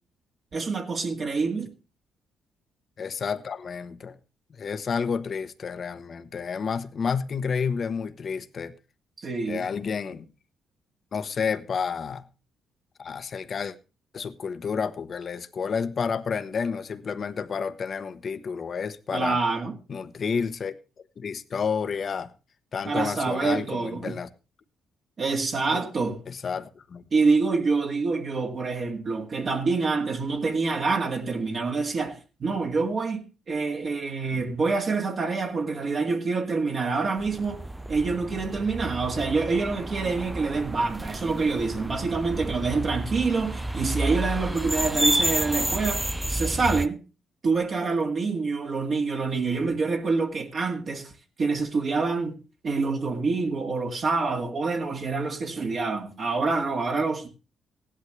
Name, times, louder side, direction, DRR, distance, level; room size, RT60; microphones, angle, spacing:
voice 1, 0.5-1.7 9.2-9.7 19.1-19.8 22.9-24.2 25.2-26.2 27.1-47.0 47.4-51.1 51.4-52.4 52.6-57.3, right 4 dB, 45° right, 2.0 m, -26 dB
voice 2, 3.0-4.2 4.5-8.7 9.5-10.3 11.1-12.2 13.0-13.7 14.1-19.4 19.9-20.7 21.2-22.3 22.7-24.3 25.7-25.8 26.3-27.0, left 6 dB, 45° left, 1.1 m, -30 dB
sound 1, 37.2-46.9, right 1 dB, 10° right, 0.5 m, -30 dB
16.0 x 11.0 x 3.2 m
cardioid pair, 90°, 0 cm